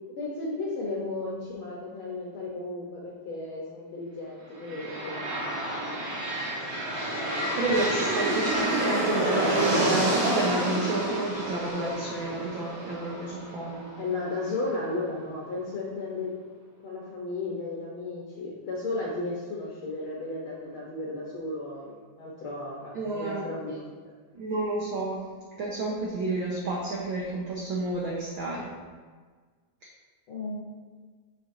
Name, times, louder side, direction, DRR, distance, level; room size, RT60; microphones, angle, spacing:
voice 1, 0.1-5.9 14.0-16.3 16.8-24.0 30.3-30.6, left 2 dB, 70° left, -4 dB, 1.3 m, -34 dB
sound 1, 4.6-14.4, right 1 dB, 55° right, 2.1 m, -29 dB
voice 2, 7.5-13.8 22.9-23.5 24.3-25.2 25.6-28.7, right 2 dB, 85° right, -4 dB, 1.1 m, -30 dB
6.7 x 5.9 x 2.6 m, 1.5 s
omnidirectional pair, 3.3 m